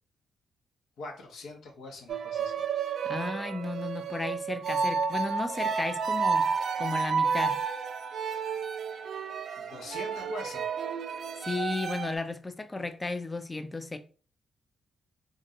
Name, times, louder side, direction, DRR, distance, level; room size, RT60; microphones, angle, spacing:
voice 1, 1.0-2.5 9.6-10.6, left 2 dB, 75° left, 0.8 m, -43 dB
sound 1, 2.1-12.2, right 5 dB, 65° right, 0.3 m, -31 dB
voice 2, 3.0-6.5 6.8-7.6 11.4-14.0, left 3 dB, 25° left, 0.5 m, -34 dB
2.8 x 2.5 x 2.7 m
supercardioid pair, 50°, 0 cm